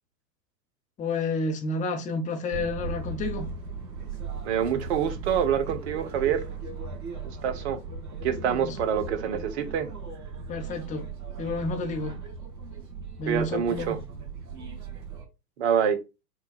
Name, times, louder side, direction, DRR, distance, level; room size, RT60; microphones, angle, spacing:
voice 1, 1.0-3.5 8.5-8.8 10.5-11.0 11.4-12.1 13.2-14.0, left 3 dB, 15° left, 0.9 m, -30 dB
sound 1, 2.5-15.2, right 4 dB, 65° right, 1.9 m, -37 dB
voice 2, 4.4-6.4 7.2-7.8 8.2-9.9 13.3-14.0 15.6-16.0, right 8 dB, 45° right, 0.8 m, -26 dB
5.4 x 2.4 x 4.1 m
figure-of-eight pair, 105°, 49 cm